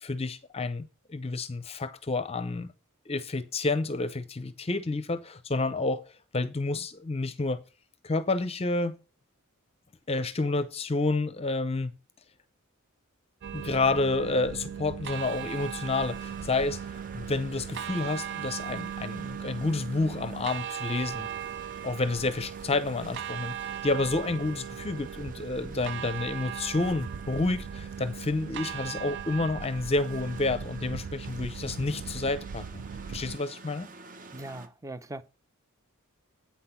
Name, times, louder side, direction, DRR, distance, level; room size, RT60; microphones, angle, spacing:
voice 1, 0.0-2.7 3.1-6.0 6.3-7.6 8.0-9.0 10.1-11.9 13.5-16.8 17.1-21.3 21.8-32.8 33.1-33.9, left 3 dB, 30° left, 0.6 m, -29 dB
sound 1, 13.4-33.4, right 8 dB, 55° right, 0.4 m, -38 dB
sound 2, 15.1-34.7, right 4 dB, 40° right, 1.0 m, -50 dB
voice 2, 34.3-35.2, right 1 dB, 15° right, 0.6 m, -40 dB
8.5 x 5.9 x 5.7 m
head